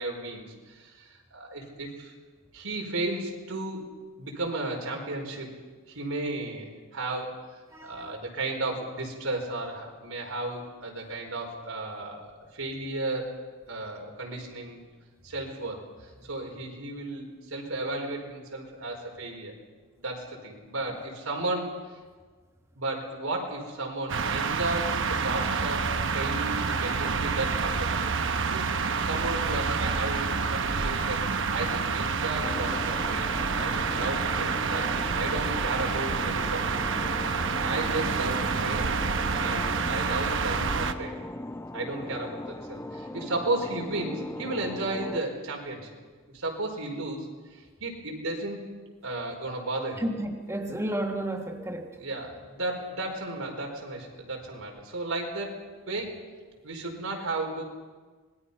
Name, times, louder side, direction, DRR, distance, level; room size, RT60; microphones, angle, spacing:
voice 1, 0.0-2.1 2.5-3.8 4.2-5.5 5.9-7.4 7.8-13.3 13.7-14.8 15.2-19.5 20.0-21.8 22.7-31.2 31.5-36.7 37.5-39.0 39.4-41.3 41.7-45.9 46.3-48.6 49.0-50.0 52.0-56.2 56.6-57.6, right 2 dB, 90° right, 1 dB, 4.6 m, -34 dB
voice 2, 7.7-8.2 50.0-51.9, right 1 dB, 15° right, 2 dB, 1.5 m, -32 dB
sound 1, 24.1-40.9, right 5 dB, 60° right, 1.0 m, -28 dB
sound 2, 32.4-45.2, left 1 dB, 10° left, 0.5 m, -39 dB
25.5 x 20.5 x 5.6 m, 1.4 s
head